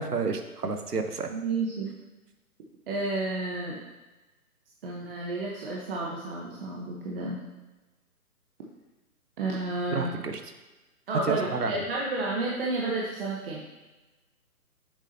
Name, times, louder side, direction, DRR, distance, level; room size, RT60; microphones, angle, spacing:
voice 1, 0.0-1.3 9.9-10.4 11.3-11.8, right 4 dB, 85° right, 6 dB, 1.1 m, -30 dB
voice 2, 1.3-1.9 2.9-3.8 4.8-7.4 9.4-10.1 11.1-13.6, right 2 dB, 40° right, -3 dB, 1.1 m, -31 dB
8.3 x 7.2 x 2.8 m, 1.1 s
figure-of-eight pair, 140°, 45 cm